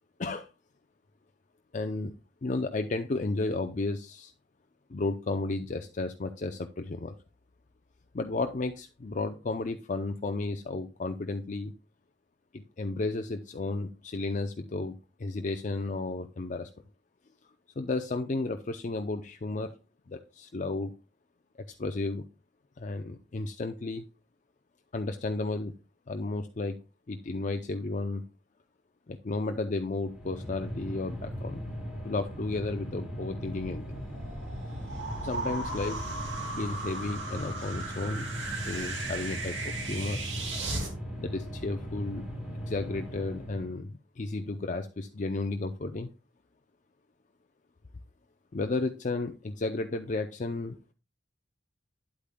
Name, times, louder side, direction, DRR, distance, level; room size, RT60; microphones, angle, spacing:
voice 1, 1.7-2.1 2.4-4.3 4.9-7.1 8.1-11.7 12.5-16.7 17.8-19.7 20.1-20.9 21.7-22.2 22.8-24.1 24.9-25.7 26.1-26.8 27.1-28.2 29.1-31.6 32.0-34.0 35.2-36.1 36.6-38.3 38.6-40.2 41.2-42.3 42.7-46.1 48.5-50.9, left 3 dB, 40° left, 7 dB, 0.5 m, -33 dB
sound 1, 30.0-43.8, equal, 5° right, 3.2 m, -39 dB
sound 2, 33.5-40.9, right 2 dB, 70° right, 2.5 m, -37 dB
10.0 x 8.4 x 2.2 m, 0.31 s
head